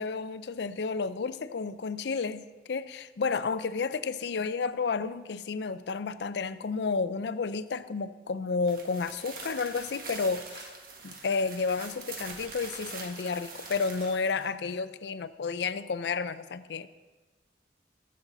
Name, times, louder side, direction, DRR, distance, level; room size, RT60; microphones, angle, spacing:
voice 1, 0.0-10.7 11.0-16.9, left 4 dB, 65° left, 14 dB, 0.5 m, -31 dB
sound 1, 8.6-14.5, right 4 dB, 50° right, 1.3 m, -44 dB
15.5 x 7.6 x 3.9 m, 1.3 s
head